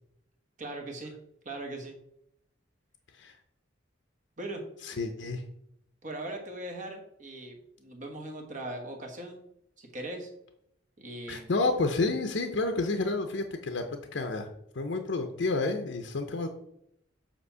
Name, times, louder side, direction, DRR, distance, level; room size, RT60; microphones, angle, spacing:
voice 1, 0.6-1.1 1.4-1.9 4.4-4.6 6.0-9.4 9.8-10.3 11.0-11.5, right 1 dB, 40° right, 3 dB, 1.3 m, -39 dB
voice 2, 4.8-5.4 11.3-14.5 14.7-16.5, left 3 dB, 65° left, 6 dB, 0.6 m, -30 dB
8.0 x 2.9 x 5.5 m, 0.77 s
head